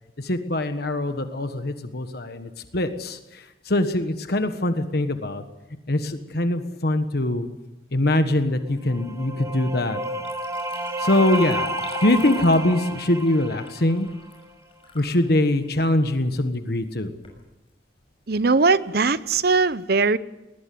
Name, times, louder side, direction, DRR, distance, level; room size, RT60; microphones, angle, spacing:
voice 1, 0.2-5.4 5.9-7.5 7.9-10.0 11.0-11.7 12.0-14.1 14.9-17.1, left 1 dB, 60° left, 1.4 m, -23 dB
sound 1, 8.8-14.5, right 1 dB, 15° right, 1.0 m, -31 dB
Liquid, 10.0-15.1 15.5-15.6 16.5-16.6 17.0-17.4 18.0-18.1 18.6-18.7 19.1-19.4, left 2 dB, 30° left, 6.2 m, -40 dB
voice 2, 18.3-20.2, right 4 dB, 55° right, 0.8 m, -20 dB
21.0 x 20.0 x 7.8 m
head